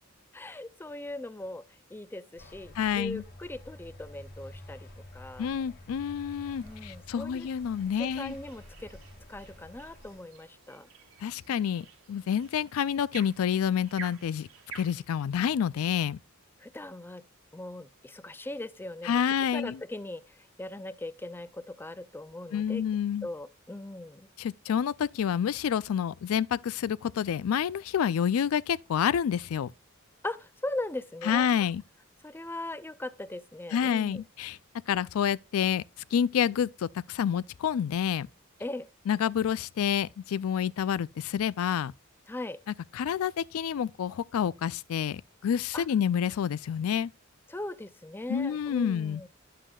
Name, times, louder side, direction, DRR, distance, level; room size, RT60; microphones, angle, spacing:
voice 1, 0.3-1.6 1.9-5.5 6.6-7.5 8.0-9.0 9.3-10.9 16.6-17.2 17.5-19.2 19.5-22.8 23.2-24.3 30.2-31.7 32.2-34.2 38.6-38.9 42.3-42.6 45.7-45.9 47.5-49.3, left 1 dB, 10° left, 0.4 m, -39 dB
sound 1, 2.4-10.2, left 1 dB, 45° left, 1.8 m, -49 dB
voice 2, 2.8-3.2 5.4-8.3 11.2-14.5 14.7-16.2 19.0-19.8 22.5-23.3 24.4-29.7 31.2-31.8 33.7-34.6 34.9-35.8 36.1-38.3 39.1-41.9 42.9-47.1 48.3-49.2, left 8 dB, 70° left, 0.3 m, -28 dB
sound 2, 6.3-15.0, right 6 dB, 75° right, 1.6 m, -51 dB
10.0 x 7.6 x 2.3 m
head